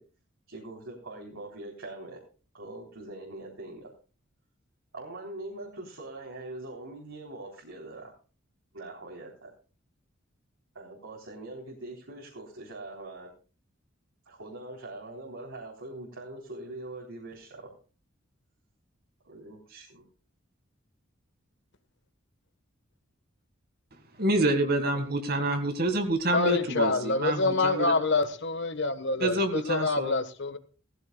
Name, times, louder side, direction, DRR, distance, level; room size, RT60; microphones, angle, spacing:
voice 1, 0.5-2.2 2.5-3.9 4.9-8.1 8.7-9.5 10.7-13.3 14.3-17.7 19.2-20.1, right 2 dB, 75° right, 3.7 m, -42 dB
voice 2, 24.2-28.0 29.2-30.2, right 1 dB, 50° right, 1.8 m, -27 dB
voice 3, 26.3-29.4 29.7-30.6, left 3 dB, 60° left, 1.3 m, -26 dB
18.0 x 15.0 x 2.3 m
head